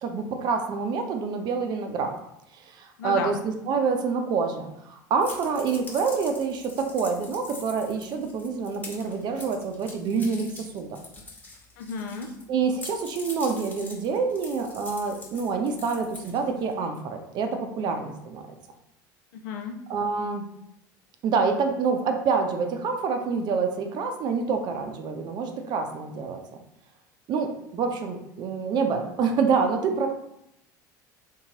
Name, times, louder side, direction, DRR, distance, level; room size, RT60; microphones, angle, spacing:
voice 1, 0.0-2.1 2.5-10.9 12.5-18.4 19.9-20.5 21.2-26.4 27.3-30.1, right 5 dB, 45° right, 4 dB, 0.6 m, -27 dB
voice 2, 3.0-3.3 11.8-12.3 19.3-19.8, left 5 dB, 65° left, 4 dB, 0.5 m, -33 dB
sound 1, 5.2-12.4 12.7-16.7, left 2 dB, 15° left, 1.3 m, -44 dB
3.6 x 2.9 x 2.8 m, 0.80 s
figure-of-eight pair, 70°, 10 cm